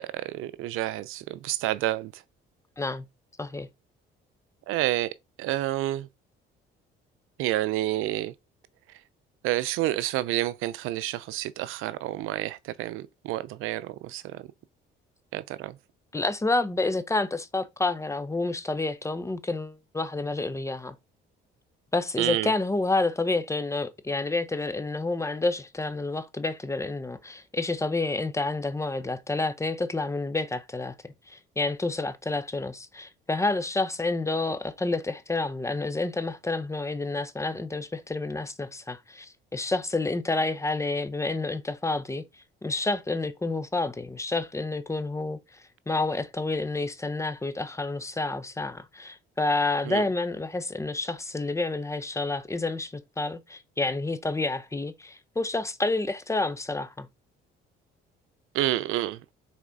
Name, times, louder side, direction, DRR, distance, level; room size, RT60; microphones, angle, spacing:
voice 1, 0.0-2.1 4.7-5.1 5.4-6.1 7.4-8.3 9.4-14.4 15.3-15.8 22.2-22.5 49.9-50.0 58.5-59.2, right 15 dB, 85° right, 0.5 m, -29 dB
voice 2, 16.1-20.9 21.9-30.9 31.3-42.2 42.6-45.4 45.9-57.1, left 2 dB, 15° left, 0.8 m, -29 dB
5.9 x 4.1 x 4.0 m
cardioid pair, 95°, 21 cm